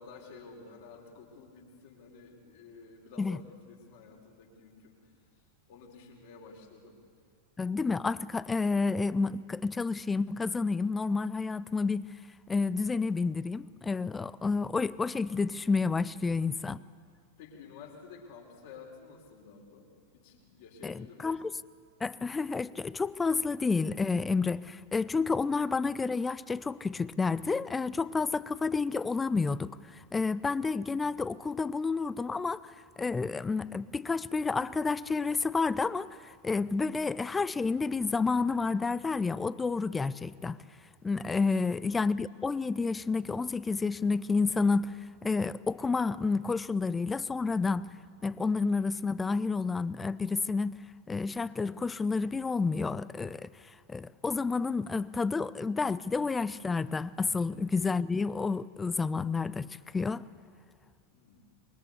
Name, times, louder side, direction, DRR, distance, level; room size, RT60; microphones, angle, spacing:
voice 1, 0.0-5.1 5.7-7.0 16.0-16.3 17.4-21.4 28.3-28.6 41.4-41.9 57.4-57.7 61.1-61.5, left 4 dB, 50° left, 4.8 m, -52 dB
voice 2, 7.6-12.0 12.5-16.8 20.8-21.5 22.0-32.7 33.0-40.6 41.0-44.9 45.2-47.9 48.2-50.7 51.1-53.5 53.9-59.7 59.9-60.2, left 4 dB, 15° left, 0.6 m, -30 dB
25.5 x 23.0 x 8.3 m
figure-of-eight pair, 90°, 0 cm